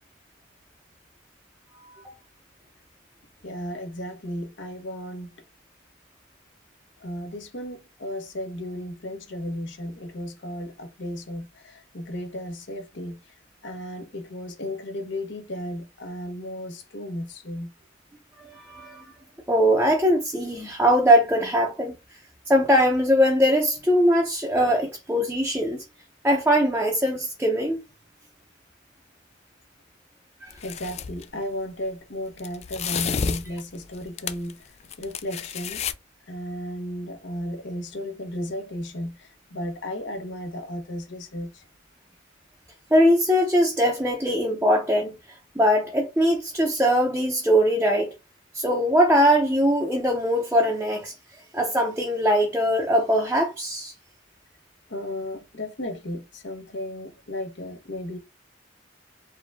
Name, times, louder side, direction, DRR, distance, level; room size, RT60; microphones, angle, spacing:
voice 1, 3.4-5.3 7.0-13.2 13.6-17.7 30.6-34.7 35.0-35.8 36.3-41.6 54.9-58.2, left 1 dB, 65° left, 1.0 m, -34 dB
voice 2, 18.4-19.0 19.5-22.0 22.5-25.8 26.2-27.8 30.4-30.5 42.9-45.2 45.6-48.1 48.5-51.1 51.5-53.9, equal, 10° right, 0.6 m, -21 dB
sound 1, 30.5-31.2 32.4-34.5 34.8-35.9, left 6 dB, 35° left, 0.3 m, -30 dB
4.8 x 2.3 x 3.4 m
head